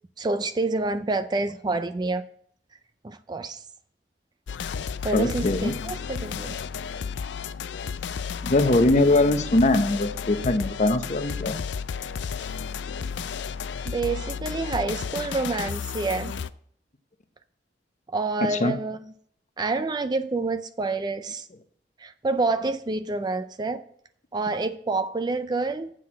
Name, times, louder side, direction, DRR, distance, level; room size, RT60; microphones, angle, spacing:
voice 1, 0.2-2.2 3.0-3.6 5.0-6.6 13.9-16.3 18.1-19.1 19.6-21.5 22.0-23.8 24.3-25.9, right 3 dB, 25° right, 0.4 m, -28 dB
sound 1, 4.5-16.5, left 6 dB, 90° left, 0.4 m, -33 dB
voice 2, 5.1-5.7 8.4-11.6 18.5-18.7, left 2 dB, 40° left, 0.7 m, -21 dB
7.7 x 6.0 x 7.4 m
head